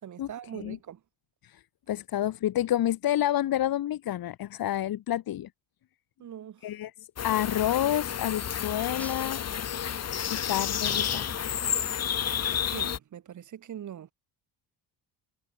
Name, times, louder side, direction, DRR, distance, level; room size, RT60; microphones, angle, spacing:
voice 1, 0.0-1.0 6.2-6.7 12.7-14.1, right 10 dB, 50° right, 6.5 m, -42 dB
voice 2, 1.4-5.5 6.6-9.5 10.3-11.3, left 12 dB, 60° left, 7.4 m, -29 dB
sound 1, 7.2-13.0, left 9 dB, 40° left, 3.1 m, -30 dB
sound 2, 9.0-12.2, left 1 dB, 5° left, 7.7 m, -47 dB
cardioid pair, 170°, 39 cm